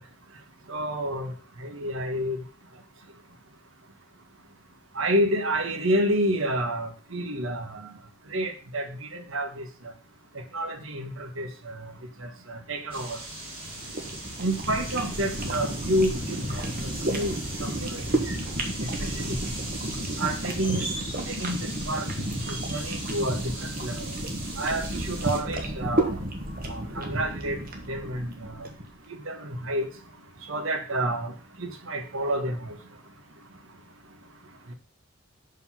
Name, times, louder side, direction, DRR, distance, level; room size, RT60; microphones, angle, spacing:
voice 1, 0.7-1.3 1.6-2.4 5.0-7.8 8.3-9.6 10.5-11.9 12.2-13.2 14.4-16.6 17.1-17.3 17.6-18.4 19.0-19.4 20.2-20.9 21.3-22.1 22.5-24.0 24.6-26.2 26.7-27.6 27.9-28.7 29.3-29.9 30.5-31.3 31.6-32.7 34.7-34.8, right 1 dB, 70° right, 6 dB, 1.3 m, -29 dB
sound 1, 12.9-25.4, right 2 dB, 25° right, 2.4 m, -38 dB
sound 2, 13.6-28.8, right 1 dB, 40° right, 1.3 m, -32 dB
6.0 x 5.4 x 5.7 m, 0.38 s
head